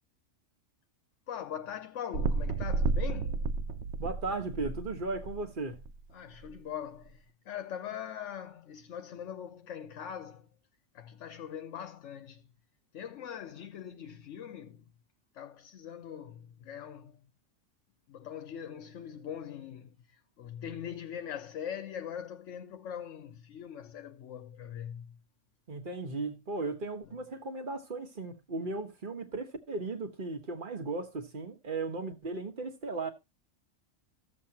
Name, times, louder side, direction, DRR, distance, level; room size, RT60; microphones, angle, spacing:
voice 1, 1.3-3.5 6.1-10.5 10.9-12.5 12.9-14.9 15.3-17.3 18.1-25.2 27.0-27.2, left 9 dB, 70° left, 1.0 m, -42 dB
sound 1, 2.1-5.9 6.5-6.6, right 4 dB, 65° right, 0.9 m, -32 dB
voice 2, 4.0-5.8 25.7-33.1, right 3 dB, 40° right, 1.5 m, -36 dB
14.5 x 7.4 x 2.9 m
omnidirectional pair, 1.3 m